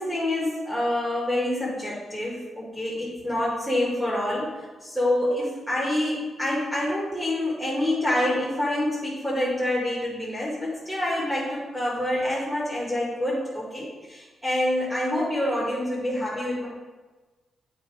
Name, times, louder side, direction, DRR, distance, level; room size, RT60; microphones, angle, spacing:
voice 1, 0.0-4.5 4.8-16.7, left 1 dB, 5° left, -7 dB, 1.7 m, -27 dB
7.9 x 2.9 x 4.8 m, 1.3 s
supercardioid pair, 55°, 0 cm